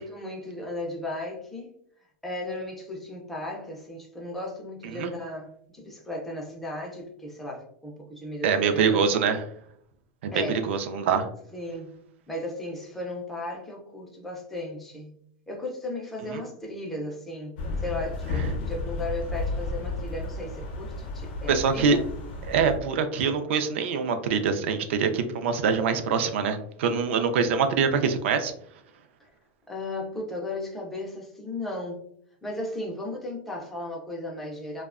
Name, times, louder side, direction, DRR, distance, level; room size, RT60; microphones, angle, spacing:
voice 1, 0.0-1.7 2.2-9.1 10.3-10.7 11.5-12.0 12.3-15.2 15.5-22.0 29.2-29.3 29.7-32.0 32.4-34.8, left 1 dB, 5° left, -2 dB, 0.3 m, -35 dB
voice 2, 8.4-9.4 10.2-11.3 16.3-16.4 21.5-22.0 22.5-28.5, right 6 dB, 75° right, 8 dB, 0.4 m, -24 dB
sound 1, 17.6-22.8, left 2 dB, 50° left, 0.6 m, -32 dB
2.6 x 2.1 x 2.4 m, 0.66 s
supercardioid pair, 175°, 7 cm